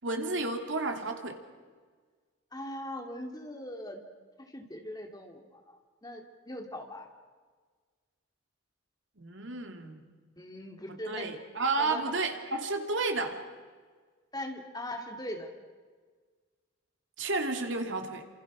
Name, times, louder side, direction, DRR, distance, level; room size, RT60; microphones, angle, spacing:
voice 1, 0.0-1.4 9.2-10.0 10.9-13.4 17.2-18.3, right 3 dB, 70° right, 5 dB, 2.8 m, -32 dB
voice 2, 2.5-4.0 4.5-5.4 5.7-5.8 6.0-7.1 10.4-11.3 11.8-12.0 14.3-15.5, left 1 dB, 20° left, 3 dB, 2.5 m, -40 dB
30.0 x 26.5 x 6.2 m, 1.5 s
head